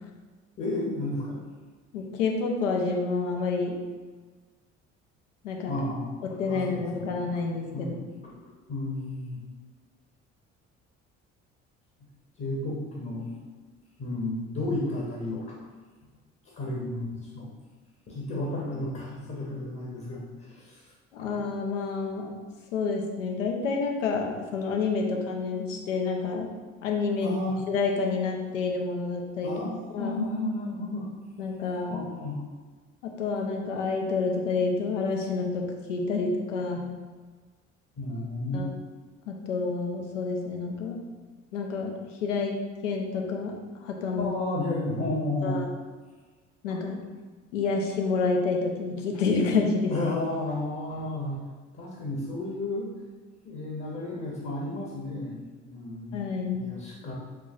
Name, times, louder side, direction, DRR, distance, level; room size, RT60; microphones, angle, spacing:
voice 1, 0.6-1.4 5.7-6.1 6.5-7.4 7.7-7.9 8.2-8.3 8.7-9.4 12.4-13.3 14.0-15.6 16.5-17.5 18.1-20.8 21.2-21.3 27.2-27.6 29.4-31.1 31.9-32.4 38.0-38.7 44.2-45.6 46.7-46.8 49.9-51.4 51.7-52.9 53.4-57.1, left 2 dB, 35° left, -3 dB, 1.0 m, -32 dB
voice 2, 1.9-3.7 5.4-5.7 6.4-7.9 21.1-22.3 22.7-26.5 26.8-27.4 27.7-29.5 29.9-30.2 31.4-32.1 33.0-36.9 38.5-38.7 39.3-41.0 41.5-41.9 42.2-42.5 42.8-43.5 43.8-44.3 45.0-45.1 45.4-45.6 46.6-47.0 47.5-49.9 56.1-56.7, left 4 dB, 80° left, 1 dB, 0.7 m, -28 dB
4.6 x 3.0 x 2.4 m, 1.4 s
figure-of-eight pair, 55°, 37 cm